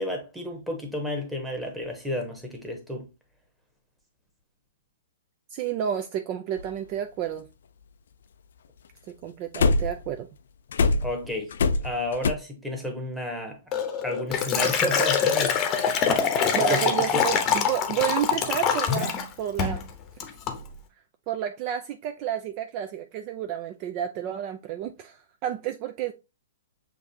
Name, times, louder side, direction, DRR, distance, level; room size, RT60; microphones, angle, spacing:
voice 1, 0.0-3.1 11.0-11.5 11.8-13.6 14.0-15.6 16.7-16.8 17.1-17.2, left 1 dB, 5° right, 1.3 m, -31 dB
voice 2, 5.5-7.5 9.1-10.3 15.9-16.0 16.5-19.8 21.3-26.1, right 10 dB, 40° right, 0.4 m, -30 dB
sound 1, 6.6-6.7 9.5-10.1 10.7-12.3, left 3 dB, 70° left, 0.4 m, -23 dB
Liquid, 13.7-19.3 19.6-19.8 20.2-20.6, left 7 dB, 30° left, 0.8 m, -24 dB
6.2 x 2.7 x 2.8 m
hypercardioid pair, 125°, 0 cm